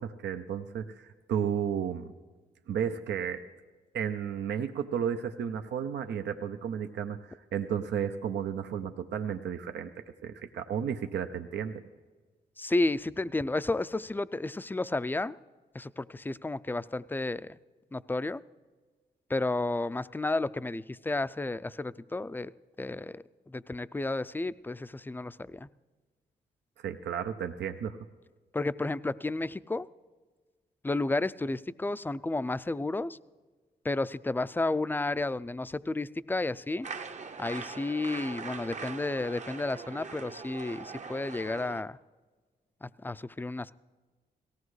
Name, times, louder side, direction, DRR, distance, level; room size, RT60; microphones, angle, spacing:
voice 1, 0.0-2.1 2.7-3.4 3.9-11.8 26.8-28.0, right 8 dB, 90° right, 7 dB, 0.6 m, -33 dB
voice 2, 12.6-15.4 15.7-17.6 17.9-18.4 19.3-22.5 22.8-25.7 28.5-29.9 30.8-33.2 33.8-36.9 37.4-42.0 42.8-43.7, left 2 dB, 10° left, 15 dB, 0.4 m, -32 dB
sound 1, 36.8-41.8, right 5 dB, 40° right, 0.7 m, -42 dB
18.0 x 16.0 x 3.2 m, 1.4 s
cardioid pair, 60°, 18 cm